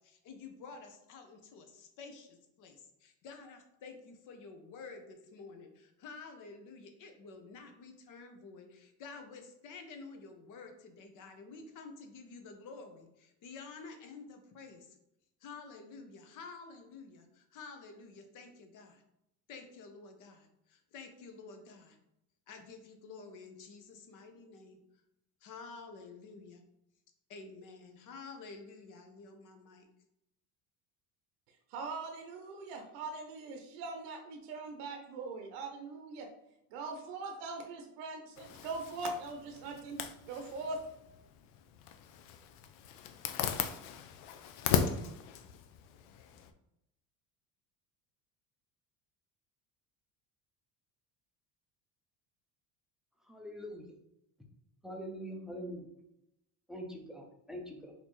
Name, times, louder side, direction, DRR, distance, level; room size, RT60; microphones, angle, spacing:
voice 1, 0.0-15.0 15.4-19.0 19.5-22.0 22.5-24.8 25.4-26.6 27.3-29.9, left 4 dB, 50° left, 5 dB, 0.8 m, -50 dB
voice 2, 31.7-36.3 36.7-40.8, right 3 dB, 75° right, 4 dB, 0.7 m, -41 dB
Zipper (clothing), 38.4-46.5, left 8 dB, 90° left, 0.5 m, -38 dB
voice 3, 53.3-53.8 54.8-55.9 56.7-57.9, equal, ahead, 2 dB, 0.3 m, -43 dB
4.1 x 2.8 x 3.0 m, 0.83 s
cardioid pair, 135°, 39 cm